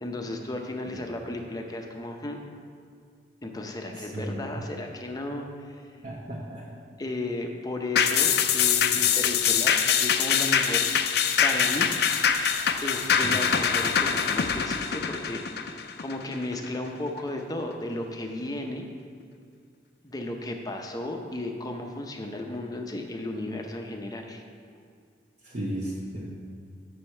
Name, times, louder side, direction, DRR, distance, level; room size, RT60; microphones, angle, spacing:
voice 1, 0.0-2.4 3.4-5.5 7.0-10.9 11.4-11.9 12.8-18.9 20.0-24.4, left 2 dB, 20° left, 3 dB, 0.6 m, -34 dB
voice 2, 6.0-6.6 13.2-13.3 25.5-26.3, right 1 dB, 45° right, -5 dB, 1.0 m, -33 dB
sound 1, 8.0-16.7 17.1-17.2, left 7 dB, 60° left, 0.4 m, -24 dB
8.2 x 6.3 x 4.4 m, 2.2 s
head